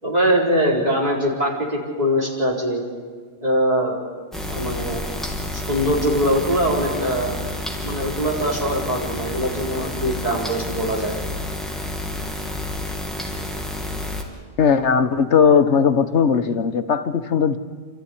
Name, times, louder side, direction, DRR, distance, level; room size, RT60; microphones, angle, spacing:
voice 1, 0.0-2.8 3.4-4.1 4.5-5.0 5.5-7.3 7.8-11.1, equal, 35° right, -3 dB, 4.8 m, -22 dB
sound 1, 4.3-14.2, left 1 dB, ahead, 2.9 m, -29 dB
voice 2, 14.6-17.6, left 6 dB, 85° left, 9 dB, 1.4 m, -18 dB
28.5 x 14.0 x 10.0 m, 1.5 s
omnidirectional pair, 1.2 m